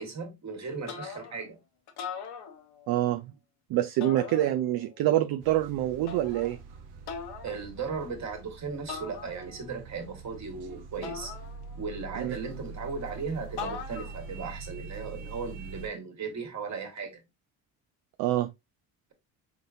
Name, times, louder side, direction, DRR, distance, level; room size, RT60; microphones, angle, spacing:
voice 1, 0.0-1.6 7.4-11.3 11.7-17.2, right 5 dB, 45° right, 1.7 m, -37 dB
sound 1, 0.9-1.5 1.9-3.0 4.0-4.9 6.1-6.6 7.1-7.6 8.9-9.7 11.0-12.0 13.6-14.3, left 6 dB, 70° left, 1.1 m, -40 dB
voice 2, 2.9-3.2 3.7-6.6 12.2-12.4 18.2-18.5, right 13 dB, 65° right, 0.5 m, -26 dB
sound 2, 5.4-15.9, right 4 dB, 80° right, 1.0 m, -44 dB
3.9 x 3.7 x 2.6 m
supercardioid pair, 75°, 40 cm